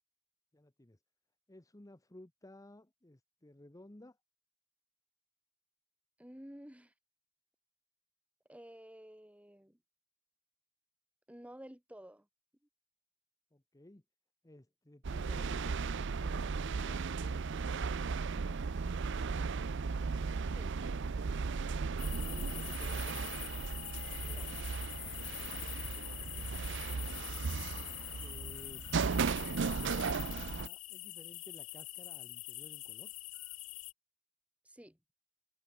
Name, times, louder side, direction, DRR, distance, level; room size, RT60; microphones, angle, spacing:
voice 1, 0.5-1.0 1.5-4.2 13.5-14.0 14.4-18.6 22.2-23.3 25.8-26.6 27.7-28.8 29.2-33.1, left 1 dB, 15° left, 0.9 m, -56 dB
voice 2, 6.2-6.9 8.5-9.8 11.3-12.3 20.5-20.8 24.2-24.6 34.6-35.0, equal, 5° right, 1.9 m, -52 dB
sound 1, 15.0-30.7, right 5 dB, 60° right, 0.6 m, -36 dB
sound 2, 22.0-33.9, left 22 dB, 80° left, 0.5 m, -45 dB
head